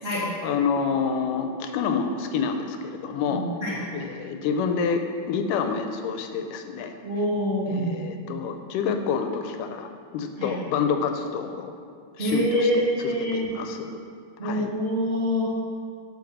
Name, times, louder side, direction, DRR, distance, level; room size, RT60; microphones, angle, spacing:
voice 1, 0.4-3.4 3.9-6.9 7.7-11.7 12.2-14.0 14.4-14.7, left 6 dB, 80° left, 6 dB, 2.2 m, -28 dB
voice 2, 3.2-3.8 7.0-8.0 10.4-10.5 12.2-13.5 14.4-15.4, equal, 35° right, -8 dB, 0.9 m, -25 dB
9.1 x 5.5 x 6.1 m, 2.2 s
omnidirectional pair, 3.7 m